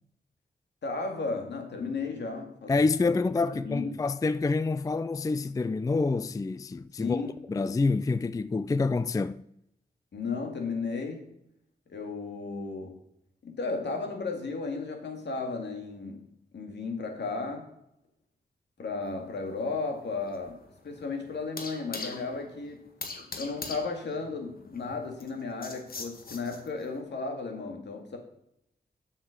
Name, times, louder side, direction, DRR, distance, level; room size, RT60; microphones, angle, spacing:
voice 1, 0.8-2.8 3.0-3.9 7.0-7.3 10.1-11.2 11.9-13.0 13.4-16.3 16.5-17.7 18.8-22.8 23.4-28.2, left 4 dB, 80° left, 2.2 m, -34 dB
voice 2, 2.7-9.4, left 3 dB, 20° left, 0.3 m, -27 dB
sound 1, 19.1-27.0, left 3 dB, 55° left, 1.6 m, -43 dB
7.4 x 6.6 x 6.5 m
cardioid pair, 65°, 18 cm